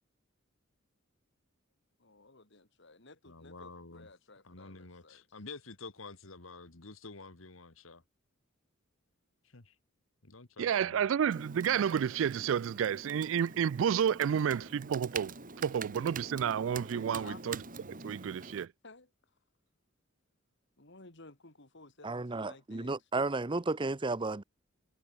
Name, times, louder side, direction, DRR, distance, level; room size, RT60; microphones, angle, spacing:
voice 1, 2.0-5.4 17.1-17.4 18.8-19.1 20.8-23.0, left 3 dB, 60° left, 3.3 m, -54 dB
voice 2, 3.3-4.1 4.4-8.0 9.5-9.7 10.2-11.1, left 3 dB, 80° left, 2.0 m, -49 dB
voice 3, 10.6-17.6 17.9-18.7, right 8 dB, 70° right, 0.3 m, -30 dB
Computer keyboard, 11.3-18.7, right 4 dB, 40° right, 2.6 m, -45 dB
voice 4, 22.0-24.4, right 3 dB, 25° right, 0.7 m, -33 dB
head